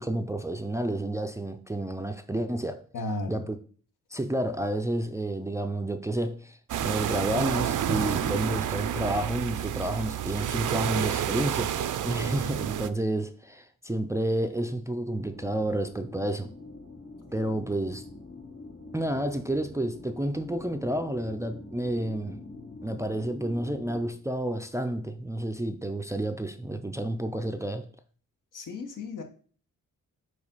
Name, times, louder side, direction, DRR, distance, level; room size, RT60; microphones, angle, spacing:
voice 1, 0.0-2.8 3.3-3.6 4.1-11.7 12.0-16.5 17.3-18.0 18.9-22.5 22.8-27.9, right 1 dB, 10° right, 0.4 m, -30 dB
voice 2, 2.9-3.5 28.5-29.2, left 2 dB, 75° left, 1.2 m, -34 dB
sound 1, 6.7-12.9, right 10 dB, 70° right, 0.5 m, -29 dB
sound 2, 15.2-24.1, left 2 dB, 40° left, 2.6 m, -45 dB
5.0 x 4.8 x 5.4 m
wide cardioid pair, 125°, 32 cm